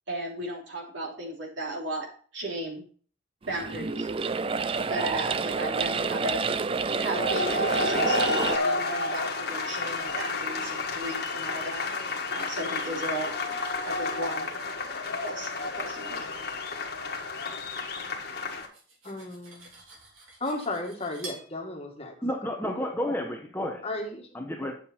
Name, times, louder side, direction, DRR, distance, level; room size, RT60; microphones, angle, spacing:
voice 1, 0.1-2.1 2.3-2.8 3.5-4.1 4.9-13.4 13.8-14.5 15.2-16.2, right 1 dB, 65° right, -2 dB, 3.2 m, -35 dB
sound 1, 3.4-8.6, right 4 dB, 25° right, 0.3 m, -28 dB
sound 2, 7.0-18.7, left 3 dB, 50° left, 1.6 m, -31 dB
Cutlery silverware, 18.3-21.5, right 2 dB, 90° right, 3.4 m, -47 dB
voice 2, 19.0-19.8 20.4-22.2 23.8-24.3, left 2 dB, 30° left, 1 dB, 1.7 m, -34 dB
voice 3, 22.2-23.8 24.3-24.7, left 1 dB, 10° left, 3 dB, 0.9 m, -31 dB
9.1 x 7.3 x 4.3 m, 0.43 s
head